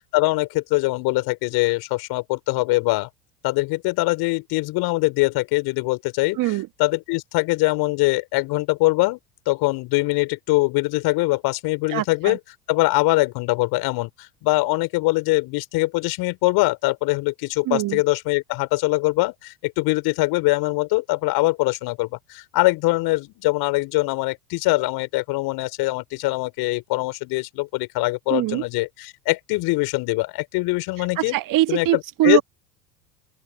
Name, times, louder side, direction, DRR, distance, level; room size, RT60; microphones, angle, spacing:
voice 1, 0.1-3.1 3.4-6.4 6.8-9.2 9.5-12.4 12.7-31.4 31.7-32.4, left 22 dB, 50° left, 3.9 m, -22 dB
voice 2, 6.4-6.7 11.9-12.4 17.6-18.0 28.3-28.6 31.0-32.4, right 16 dB, 40° right, 1.7 m, -22 dB
open air
figure-of-eight pair, 80°, 48 cm